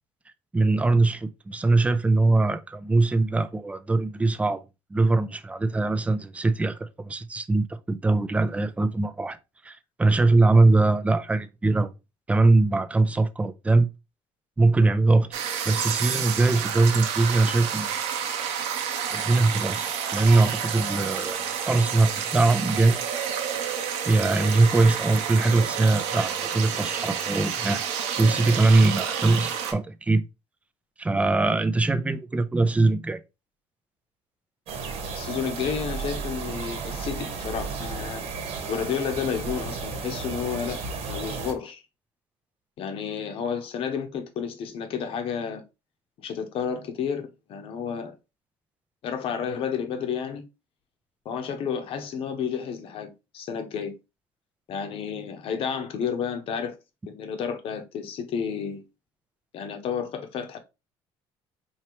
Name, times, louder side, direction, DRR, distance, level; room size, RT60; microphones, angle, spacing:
voice 1, 0.5-4.6 4.9-9.4 9.6-11.9 12.3-13.9 14.6-15.3 15.7-17.9 19.1-23.0 24.1-27.9 28.2-30.2 31.0-33.2, right 3 dB, 10° right, 0.4 m, -22 dB
sound 1, 15.3-29.7, right 8 dB, 85° right, 0.9 m, -29 dB
sound 2, 34.7-41.5, right 4 dB, 70° right, 1.2 m, -33 dB
voice 2, 35.1-38.2 38.7-40.8 41.1-41.8 42.8-45.6 46.2-48.1 49.0-50.4 51.2-53.9 54.7-56.8 57.1-58.8 59.5-60.6, left 7 dB, 60° left, 0.9 m, -31 dB
4.5 x 2.8 x 2.9 m
cardioid pair, 110°, 11 cm